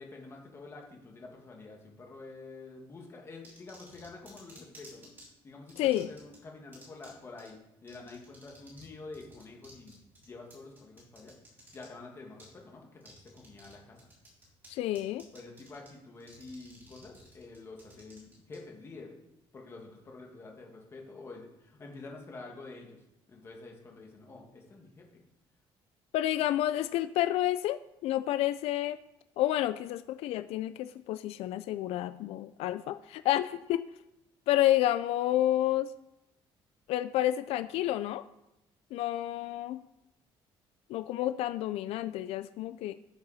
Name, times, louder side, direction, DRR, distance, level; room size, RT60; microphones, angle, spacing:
voice 1, 0.0-5.1 5.4-11.3 11.7-14.0 15.3-19.2 19.5-23.0 23.3-25.2, left 3 dB, 25° left, 1 dB, 1.8 m, -48 dB
sound 1, 3.4-5.3 5.7-6.4 6.7-7.1 7.4-7.5 7.9-8.9 9.1-11.9 12.4-12.5 13.0-13.7 14.0-14.7 15.0-15.9 16.2-18.6, right 2 dB, 20° right, 3.9 m, -54 dB
voice 2, 5.8-6.1 14.7-15.2 26.1-29.0 29.4-33.8 34.5-35.9 36.9-38.2 38.9-39.8 40.9-42.9, left 13 dB, 85° left, 12 dB, 0.4 m, -29 dB
13.5 x 6.7 x 4.1 m, 0.89 s
cardioid pair, 170°, 10 cm